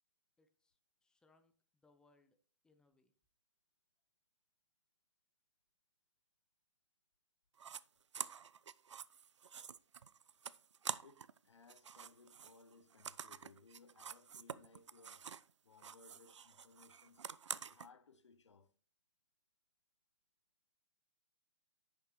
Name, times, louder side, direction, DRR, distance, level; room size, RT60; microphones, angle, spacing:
voice 1, 0.4-2.4 2.6-3.1, left 3 dB, 5° left, 0.7 m, -73 dB
sound 1, 7.6-7.8 8.1-11.4 11.6-15.5 15.8-17.9, right 7 dB, 70° right, 0.4 m, -48 dB
voice 2, 11.0-17.3 17.6-18.7, left 4 dB, 70° left, 0.8 m, -64 dB
9.8 x 6.6 x 3.2 m
figure-of-eight pair, 125°, 16 cm